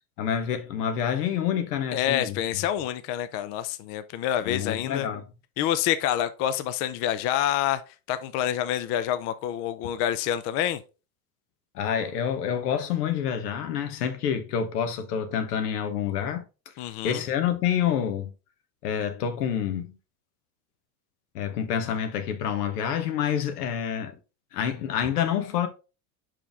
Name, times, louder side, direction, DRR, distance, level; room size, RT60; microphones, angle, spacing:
voice 1, 0.2-2.4 4.4-5.2 11.7-16.4 17.0-18.3 18.8-20.0 21.3-24.1 24.5-25.7, left 8 dB, 85° left, 1.3 m, -27 dB
voice 2, 1.9-5.1 5.6-7.8 8.1-10.8 16.8-17.2, left 11 dB, 35° left, 0.4 m, -27 dB
5.5 x 5.0 x 3.5 m
supercardioid pair, 135°, 45 cm